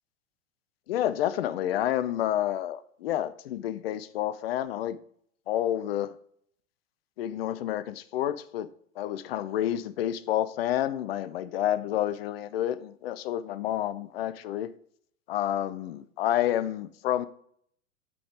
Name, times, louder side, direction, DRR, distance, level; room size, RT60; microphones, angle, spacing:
voice 1, 0.9-5.0 5.5-6.1 7.2-8.7 9.0-14.7 15.3-17.3, left 12 dB, 50° left, 0.5 m, -29 dB
6.0 x 5.0 x 4.8 m
figure-of-eight pair, 90°, 39 cm